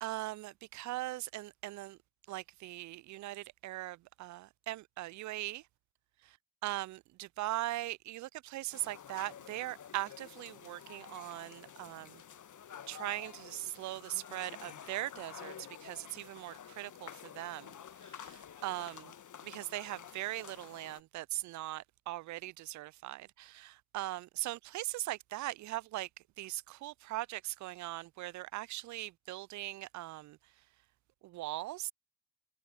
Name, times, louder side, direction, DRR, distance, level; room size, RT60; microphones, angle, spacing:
voice 1, 0.0-2.0 2.3-5.6 6.6-12.2 12.9-15.5 15.8-17.7 18.2-19.1 19.4-26.1 26.4-30.4 31.2-31.9, right 17 dB, 45° right, 0.4 m, -40 dB
sound 1, 8.7-21.0, left 9 dB, 45° left, 1.6 m, -50 dB
hypercardioid pair, 50°, 42 cm